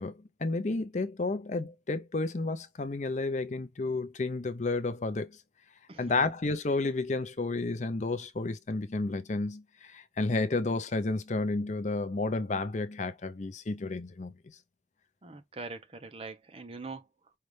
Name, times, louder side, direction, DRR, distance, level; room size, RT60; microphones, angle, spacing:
voice 1, 0.0-5.4 6.0-14.3, left 3 dB, 40° left, 0.6 m, -31 dB
voice 2, 5.9-6.3 15.2-17.1, right 3 dB, 35° right, 0.7 m, -43 dB
5.5 x 2.4 x 3.2 m
head